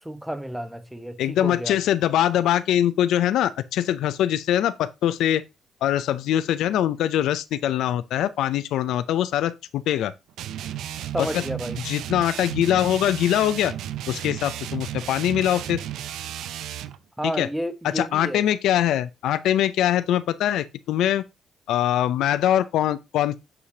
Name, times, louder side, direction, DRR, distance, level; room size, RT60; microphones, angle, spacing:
voice 1, 0.0-1.8 11.1-11.8 17.2-18.4, equal, 5° right, 1.0 m, -31 dB
voice 2, 1.2-5.4 5.8-10.1 11.2-11.4 11.8-13.7 14.1-15.8 17.4-17.5 18.0-21.2 21.7-23.4, left 11 dB, 85° left, 0.4 m, -23 dB
sound 1, 10.4-17.0, right 11 dB, 85° right, 0.4 m, -34 dB
8.3 x 4.9 x 2.7 m
cardioid pair, 90°, 0 cm